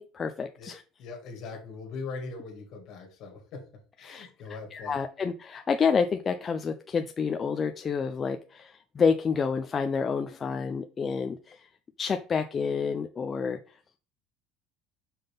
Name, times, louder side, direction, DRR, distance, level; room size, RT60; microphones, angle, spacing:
voice 1, 0.0-0.8 4.0-4.3 4.7-11.7 12.0-13.6, left 5 dB, 20° left, 7 dB, 0.3 m, -29 dB
voice 2, 1.0-3.6 4.0-5.0, left 4 dB, 45° left, 3 dB, 2.0 m, -40 dB
5.7 x 5.3 x 3.5 m, 0.37 s
cardioid pair, 175°, 0 cm